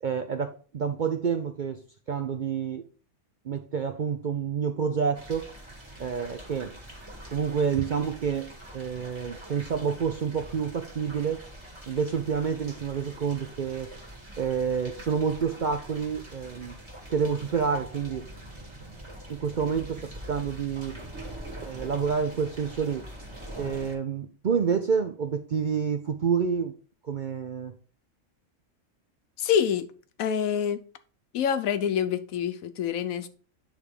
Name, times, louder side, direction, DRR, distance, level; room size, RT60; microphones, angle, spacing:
voice 1, 0.0-2.8 3.4-5.5 6.0-6.7 7.3-11.4 11.9-13.9 14.4-16.8 17.1-18.3 19.3-21.0 21.6-23.1 23.6-26.7 27.0-27.7, right 6 dB, 55° right, 0.5 m, -28 dB
sound 1, 5.1-23.9, right 1 dB, 20° right, 1.8 m, -44 dB
voice 2, 29.4-29.9 30.2-30.8 31.3-33.3, left 8 dB, 85° left, 1.1 m, -26 dB
8.9 x 3.5 x 4.8 m
omnidirectional pair, 1.4 m